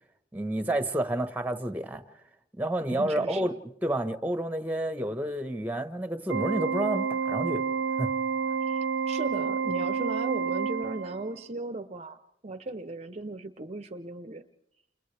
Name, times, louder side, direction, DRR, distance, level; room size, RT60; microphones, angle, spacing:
voice 1, 0.3-2.0 2.6-3.5 3.8-7.6 8.0-8.1, right 1 dB, 10° right, 1.2 m, -29 dB
voice 2, 2.9-3.5 8.6-12.2 12.4-14.4, right 2 dB, 35° right, 0.7 m, -37 dB
Organ, 6.3-11.4, right 6 dB, 90° right, 0.8 m, -29 dB
29.5 x 29.0 x 3.4 m
head